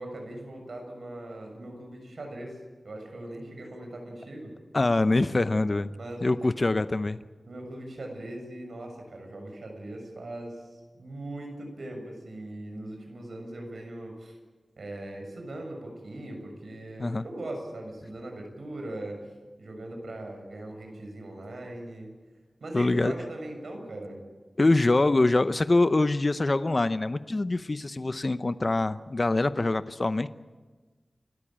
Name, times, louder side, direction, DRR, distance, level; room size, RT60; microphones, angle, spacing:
voice 1, 0.0-2.6 2.8-4.6 6.0-6.4 7.5-14.4 14.8-19.3 19.6-22.1 22.6-24.2, right 1 dB, 85° right, 3 dB, 6.8 m, -40 dB
voice 2, 4.7-5.9 6.2-7.2 17.0-17.2 22.7-23.1 24.6-30.3, left 2 dB, 40° left, 12 dB, 0.7 m, -24 dB
29.5 x 13.5 x 8.9 m, 1.3 s
wide cardioid pair, 90°, 0 cm